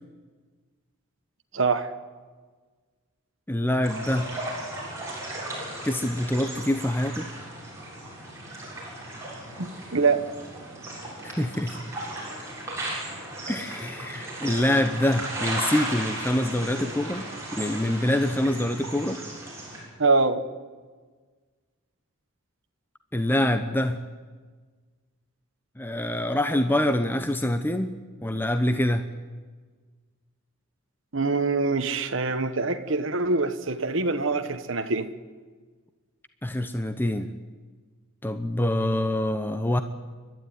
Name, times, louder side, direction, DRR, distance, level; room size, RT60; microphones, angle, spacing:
voice 1, 1.5-1.9 9.6-10.2 20.0-20.4 31.1-35.1, right 3 dB, 60° right, 7 dB, 1.3 m, -24 dB
voice 2, 3.5-4.3 5.8-7.3 11.2-11.8 13.5-19.2 23.1-24.0 25.8-29.0 36.4-37.3 38.2-39.8, left 1 dB, 10° left, 8 dB, 0.8 m, -25 dB
sound 1, 3.8-19.8, right 1 dB, 15° right, 7.0 m, -36 dB
30.0 x 12.5 x 9.5 m, 1.4 s
head